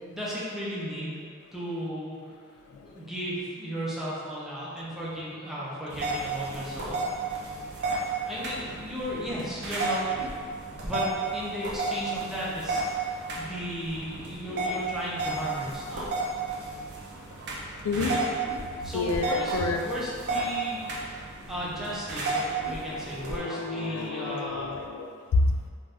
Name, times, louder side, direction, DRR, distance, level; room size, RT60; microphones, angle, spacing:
voice 1, 0.0-2.3 2.8-7.0 8.3-10.2 10.8-16.1 17.9-18.2 18.8-21.2 21.5-24.7, equal, ahead, -8 dB, 0.5 m, -35 dB
sound 1, 5.9-23.4, right 3 dB, 50° right, 0.5 m, -32 dB
voice 2, 18.9-19.8 22.6-25.7, left 3 dB, 85° left, 3 dB, 0.3 m, -29 dB
2.6 x 2.3 x 3.3 m, 2.1 s
head